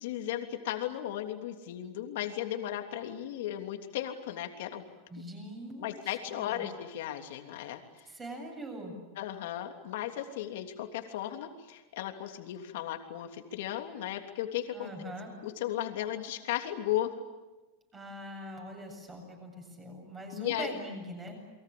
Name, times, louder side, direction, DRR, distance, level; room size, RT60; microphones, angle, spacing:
voice 1, 0.0-4.8 5.8-7.8 9.2-15.1 15.4-17.1 20.3-20.8, left 12 dB, 65° left, 5 dB, 3.1 m, -35 dB
voice 2, 5.1-6.6 7.6-7.7 8.1-8.9 14.7-15.3 17.9-21.4, right 1 dB, 15° right, 2 dB, 7.9 m, -43 dB
29.5 x 23.5 x 8.7 m, 1.1 s
supercardioid pair, 170°, 0 cm